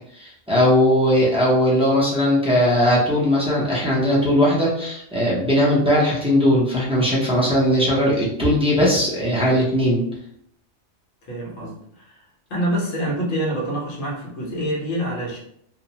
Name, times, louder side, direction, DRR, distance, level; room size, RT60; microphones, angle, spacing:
voice 1, 0.1-10.0, equal, 10° right, -6 dB, 0.3 m, -19 dB
voice 2, 11.3-12.2 12.5-15.4, right 1 dB, 60° left, -3 dB, 1.1 m, -26 dB
2.8 x 2.1 x 2.8 m, 0.70 s
omnidirectional pair, 1.4 m